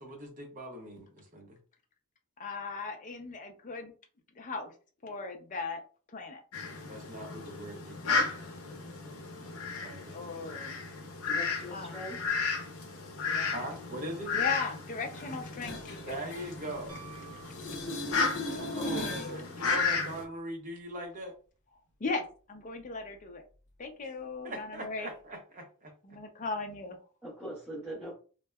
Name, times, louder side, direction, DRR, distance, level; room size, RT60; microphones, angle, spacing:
voice 1, 0.0-1.6 6.9-9.3 9.8-10.2 13.4-14.3 16.1-17.1 18.5-21.3 24.4-25.9, right 1 dB, 40° right, 0.6 m, -41 dB
voice 2, 2.4-3.9 4.4-4.7 5.0-5.8 6.1-6.4 10.1-10.8 11.7-11.9 13.3-13.5 14.3-16.2 18.5-19.4 22.0-23.4 23.8-25.1 26.0-27.0, left 4 dB, 35° left, 0.5 m, -38 dB
Fowl, 6.5-20.2, left 4 dB, 80° left, 0.6 m, -34 dB
voice 3, 11.2-12.3 27.2-28.1, right 1 dB, 10° right, 0.9 m, -41 dB
sound 1, 15.1-17.2 17.5-19.4 25.1-25.2, left 1 dB, 55° left, 0.8 m, -39 dB
Piano, 16.9-18.5 20.8-20.9, right 11 dB, 75° right, 0.8 m, -53 dB
2.6 x 2.1 x 2.2 m
head